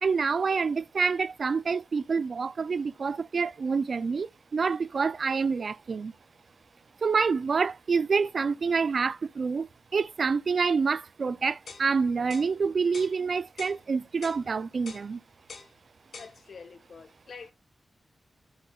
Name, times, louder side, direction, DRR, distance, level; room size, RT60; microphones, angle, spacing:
voice 1, 0.0-6.1 7.0-9.7 9.9-15.2, right 5 dB, 60° right, 0.4 m, -27 dB
sound 1, 11.7-11.9 12.3-12.5 12.9-13.1 13.6-13.8 14.2-14.4 14.9-15.1 15.5-15.7 16.1-16.3, left 5 dB, 85° left, 1.5 m, -44 dB
voice 2, 16.2-17.5, left 5 dB, 70° left, 1.3 m, -46 dB
9.2 x 8.1 x 2.3 m
wide cardioid pair, 110°, 0 cm